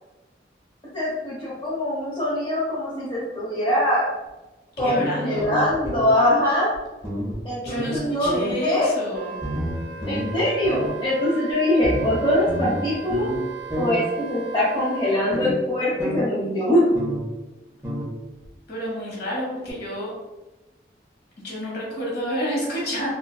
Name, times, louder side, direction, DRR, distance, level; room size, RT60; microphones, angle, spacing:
voice 1, 0.9-4.0 4.8-6.7 7.4-8.3 8.6-8.9 10.0-13.3 13.8-16.8, left 1 dB, 25° left, -11 dB, 0.8 m, -23 dB
voice 2, 4.8-5.5 7.6-9.3 18.7-20.1 21.4-23.1, equal, 70° left, -4 dB, 0.9 m, -29 dB
sound 1, 4.8-6.1 6.7-6.8 7.0-7.4 7.7-8.5 9.4-10.4 10.6-10.9 11.8-13.4 13.7-13.9 15.3-15.5 16.0-16.2 16.9-17.3 17.8-18.1 18.4-18.5 19.7-19.8, equal, 15° right, 0.6 m, -29 dB
Wind instrument woodwind instrument, 9.1-15.2, right 6 dB, 90° right, 0.5 m, -38 dB
3.9 x 2.2 x 2.2 m, 1.1 s
head